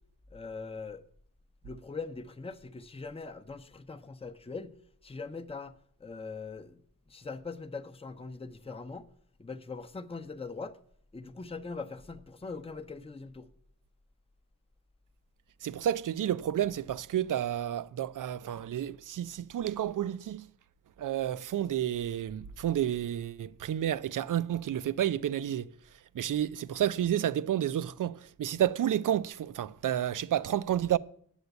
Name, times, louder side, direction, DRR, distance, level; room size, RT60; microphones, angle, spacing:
voice 1, 0.3-1.0 1.6-4.8 5.0-6.8 7.1-9.1 9.4-10.8 11.1-13.5, left 4 dB, 15° left, 0.7 m, -41 dB
voice 2, 15.6-20.4 21.0-25.7 26.1-31.0, right 11 dB, 65° right, 0.5 m, -30 dB
8.1 x 7.9 x 8.1 m
cardioid pair, 70°, 34 cm